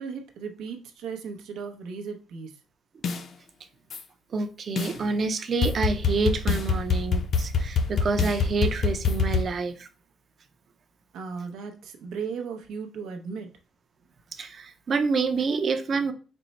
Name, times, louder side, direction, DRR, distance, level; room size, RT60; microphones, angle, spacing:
voice 1, 0.0-2.6 11.1-13.5, right 5 dB, 85° right, 0.8 m, -36 dB
sound 1, 3.0-3.2 3.9-4.0 4.8-4.9 5.6-9.4, left 5 dB, 60° left, 0.6 m, -25 dB
voice 2, 4.3-9.9 14.4-16.1, right 4 dB, 50° right, 0.6 m, -27 dB
4.4 x 2.1 x 4.1 m
cardioid pair, 90°, 0 cm